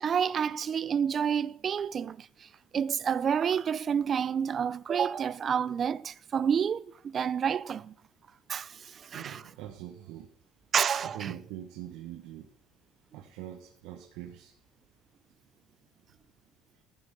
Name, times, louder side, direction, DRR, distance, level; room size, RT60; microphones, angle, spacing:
voice 1, 0.0-2.3 2.7-7.9 8.5-9.4 10.7-11.3, right 7 dB, 30° right, 0.4 m, -29 dB
voice 2, 9.1-10.3 11.0-12.5 13.1-14.5, right 12 dB, 75° right, 1.3 m, -43 dB
14.0 x 6.2 x 5.4 m
cardioid pair, 135°, 0 cm